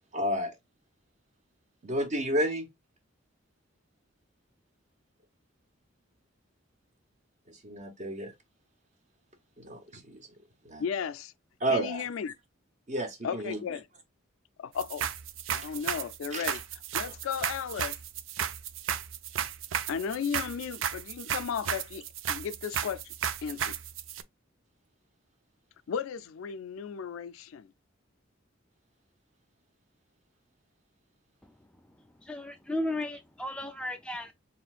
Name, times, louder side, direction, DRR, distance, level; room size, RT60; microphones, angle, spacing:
voice 1, 0.1-0.5 1.8-2.7 7.5-8.3 9.6-10.2 10.6-10.8 11.6-12.1 12.9-13.6 16.3-16.4, right 1 dB, 35° right, 0.9 m, -31 dB
voice 2, 10.8-11.3 11.7-12.3 13.2-13.9 14.6-15.0 15.5-16.6 16.9-18.0 19.9-23.1 23.4-23.8 25.9-27.7, left 7 dB, 80° left, 0.4 m, -35 dB
sound 1, 14.8-24.2, right 9 dB, 70° right, 0.4 m, -34 dB
voice 3, 32.2-34.3, left 1 dB, 5° left, 0.3 m, -35 dB
4.2 x 3.6 x 2.4 m
head